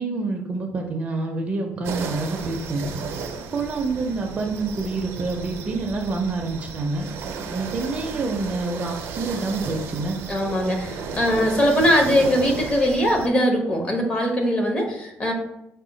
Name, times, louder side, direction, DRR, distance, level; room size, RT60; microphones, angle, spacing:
voice 1, 0.0-2.9 3.5-7.1 7.5-10.2, right 3 dB, 30° right, 3 dB, 0.4 m, -27 dB
sound 1, 1.8-13.3, right 5 dB, 90° right, 0.5 m, -34 dB
voice 2, 10.3-15.3, equal, 25° left, 2 dB, 0.7 m, -21 dB
4.9 x 2.1 x 3.7 m, 0.83 s
cardioid pair, 180°, 4 cm